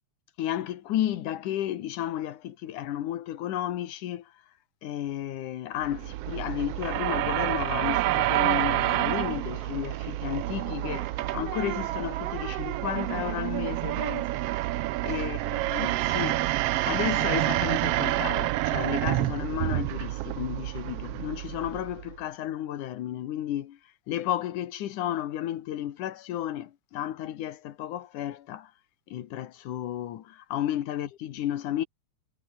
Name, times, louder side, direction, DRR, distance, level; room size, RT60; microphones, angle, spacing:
voice 1, 0.4-4.3 4.8-14.3 15.0-16.4 16.7-23.8 24.1-28.7 29.1-31.8, left 12 dB, 90° left, 2.9 m, -33 dB
sound 1, 5.8-22.2, right 16 dB, 75° right, 1.4 m, -28 dB
Acoustic guitar, 9.1-14.3, right 3 dB, 60° right, 8.0 m, -53 dB
omnidirectional pair, 3.4 m